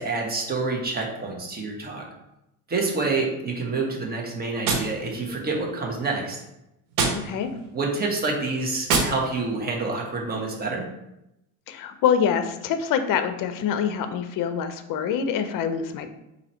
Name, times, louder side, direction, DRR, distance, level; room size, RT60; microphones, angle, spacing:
voice 1, 0.0-2.1 2.7-6.4 7.7-10.9, right 3 dB, 20° right, -1 dB, 1.2 m, -27 dB
Gunshot gunfire, 4.6-5.7 6.9-7.8 8.8-9.7, right 4 dB, 80° right, 1.1 m, -27 dB
voice 2, 7.1-7.5 11.7-16.1, left 7 dB, 50° left, 8 dB, 0.6 m, -25 dB
4.1 x 2.8 x 4.3 m, 0.90 s
supercardioid pair, 100°, 42 cm